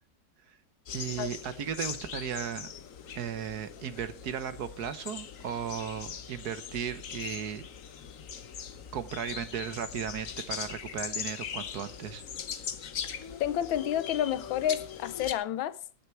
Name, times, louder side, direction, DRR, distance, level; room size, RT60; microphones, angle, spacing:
sound 1, 0.9-15.3, left 8 dB, 50° left, 1.2 m, -40 dB
voice 1, 0.9-2.7 3.1-7.7 8.9-12.2, right 8 dB, 60° right, 1.3 m, -36 dB
voice 2, 13.4-15.8, left 10 dB, 85° left, 1.5 m, -30 dB
18.5 x 6.5 x 4.5 m
omnidirectional pair, 2.1 m